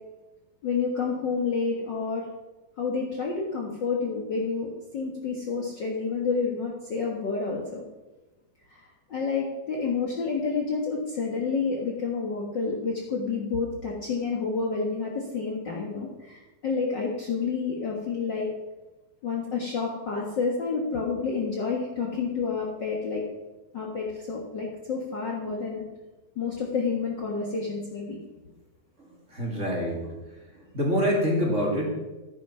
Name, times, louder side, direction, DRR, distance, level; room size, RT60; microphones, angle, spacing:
voice 1, 0.6-2.2 2.8-7.8 8.7-8.8 9.1-18.5 19.2-23.2 23.7-25.8 26.3-28.2, left 4 dB, 80° left, -2 dB, 1.0 m, -29 dB
voice 2, 29.0-30.1 30.7-31.9, equal, 20° right, -2 dB, 2.6 m, -26 dB
13.5 x 9.9 x 5.9 m, 1.1 s
omnidirectional pair, 4.5 m